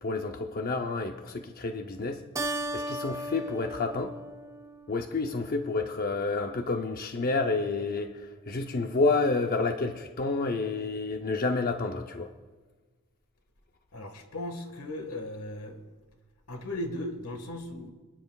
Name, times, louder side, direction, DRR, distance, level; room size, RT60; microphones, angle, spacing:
voice 1, 0.0-2.2 2.7-4.1 4.9-8.1 8.5-12.3, left 3 dB, 40° left, 5 dB, 0.6 m, -29 dB
Keyboard (musical), 2.4-5.2, right 1 dB, 15° right, 0.5 m, -36 dB
voice 2, 13.9-15.8 16.5-17.9, left 1 dB, 80° left, 6 dB, 1.6 m, -37 dB
27.5 x 10.0 x 2.3 m, 1.4 s
head